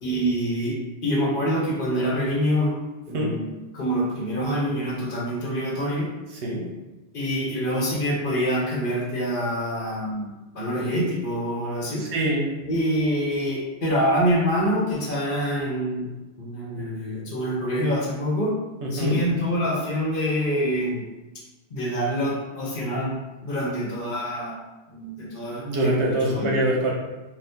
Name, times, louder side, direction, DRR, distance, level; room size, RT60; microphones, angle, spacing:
voice 1, 0.0-2.8 3.1-6.1 7.1-12.1 12.7-16.1 16.4-18.6 18.9-21.1 21.7-23.2 23.4-24.6 24.9-26.7, equal, 55° left, -3 dB, 0.9 m, -26 dB
voice 2, 6.3-6.7 12.0-12.6 18.8-19.2 25.6-26.9, right 1 dB, 80° right, -2 dB, 1.0 m, -24 dB
2.7 x 2.4 x 3.4 m, 1.1 s
omnidirectional pair, 1.1 m